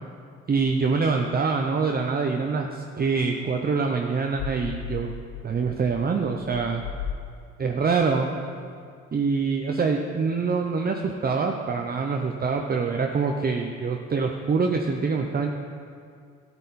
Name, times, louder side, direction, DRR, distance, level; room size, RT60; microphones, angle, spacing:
voice 1, 0.5-5.1 5.4-6.8 7.6-8.3 9.1-15.5, right 4 dB, 30° right, 3 dB, 0.7 m, -25 dB
sound 1, 4.3-7.8, left 7 dB, 85° left, 0.6 m, -36 dB
12.5 x 8.9 x 4.2 m, 2.3 s
cardioid pair, 90°, 30 cm